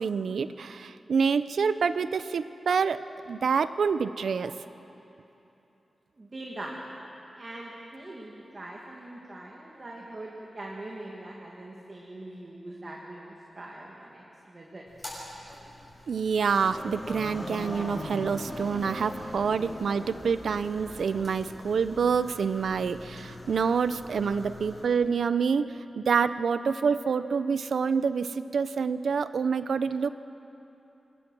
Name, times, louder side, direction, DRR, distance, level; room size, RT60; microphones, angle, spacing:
voice 1, 0.0-4.5 16.1-30.1, right 6 dB, 85° right, 13 dB, 0.6 m, -27 dB
voice 2, 6.2-6.8 7.4-14.9, right 1 dB, 30° right, -2 dB, 2.0 m, -42 dB
sound 1, 14.9-24.8, left 1 dB, 30° left, 6.1 m, -42 dB
sound 2, 16.6-22.9, equal, ahead, 1.2 m, -45 dB
26.0 x 21.0 x 6.2 m, 3.0 s
wide cardioid pair, 175°, 0 cm